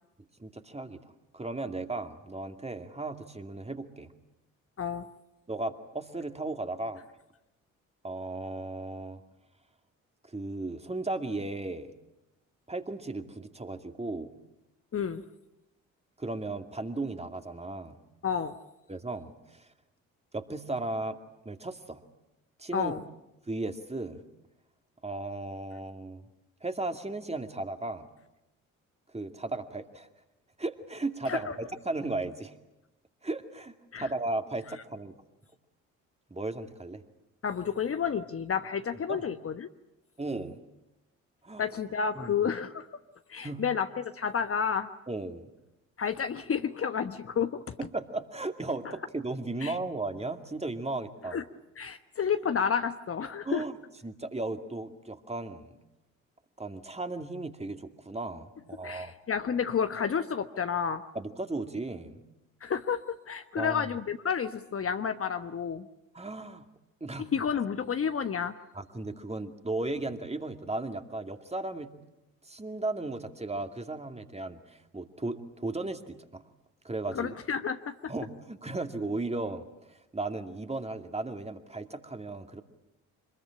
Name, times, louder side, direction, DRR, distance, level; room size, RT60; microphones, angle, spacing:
voice 1, 0.4-1.0 1.3-4.1 5.5-7.0 8.0-9.2 10.2-11.9 12.7-14.3 16.2-18.0 18.9-19.7 20.3-21.2 21.4-22.0 22.6-22.9 23.5-24.2 25.0-26.2 26.6-28.1 29.1-30.1 30.6-32.5 33.2-35.1 36.3-37.0 39.1-39.2 40.2-40.6 41.4-41.7 42.1-42.3 43.4-43.6 45.1-45.5 47.8-51.4 53.4-53.8 54.0-55.7 56.6-59.1 61.1-62.2 63.6-63.9 66.1-66.6 67.0-67.3 68.7-71.9 72.4-76.4 76.8-77.3 78.1-82.6, right 2 dB, 15° right, 7 dB, 2.4 m, -35 dB
voice 2, 14.9-15.2 18.2-18.5 22.7-23.0 31.3-31.4 33.9-34.1 37.4-39.7 41.6-42.9 43.3-44.9 46.0-47.6 49.6-49.8 51.3-51.4 51.8-53.6 58.8-61.0 62.6-65.8 67.3-68.5 77.1-77.9, left 7 dB, 35° left, 9 dB, 1.1 m, -30 dB
26.0 x 21.0 x 8.8 m, 0.94 s
figure-of-eight pair, 45°, 41 cm